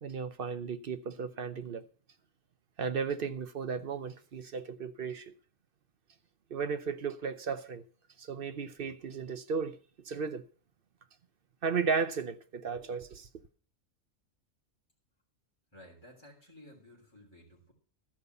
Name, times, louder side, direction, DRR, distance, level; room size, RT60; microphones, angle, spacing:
voice 1, 0.0-1.8 2.8-5.3 6.5-7.8 8.2-9.8 10.1-10.4 11.6-13.3, right 5 dB, 50° right, 0.8 m, -35 dB
voice 2, 15.7-17.7, left 1 dB, 20° left, 3.4 m, -55 dB
13.0 x 5.4 x 8.0 m
omnidirectional pair, 1.4 m